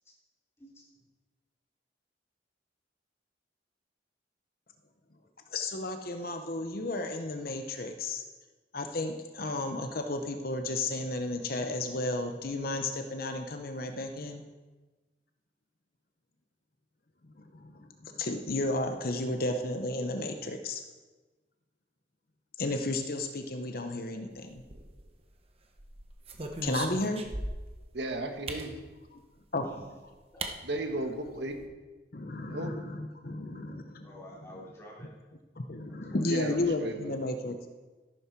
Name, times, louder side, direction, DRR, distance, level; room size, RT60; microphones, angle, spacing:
voice 1, 0.6-0.9 29.6-30.0 30.3-30.6 34.0-35.1 35.9-36.6, equal, 15° left, -5 dB, 3.8 m, -50 dB
voice 2, 5.5-8.2 8.7-14.4 17.5-20.8 22.6-24.6 26.6-27.2 29.5-29.7 32.1-34.1 35.6-37.7, left 2 dB, 50° left, 6 dB, 0.9 m, -33 dB
sound 1, 24.6-25.3 25.8-27.8 28.5-28.7 29.8-29.9 30.4-30.6 30.9-31.0 31.3-31.7, right 2 dB, 30° right, 1.1 m, -38 dB
voice 3, 27.9-28.8 30.6-31.6 32.5-32.7 36.3-37.1, right 1 dB, 65° right, 5 dB, 1.4 m, -35 dB
14.0 x 11.5 x 4.6 m, 1.2 s
head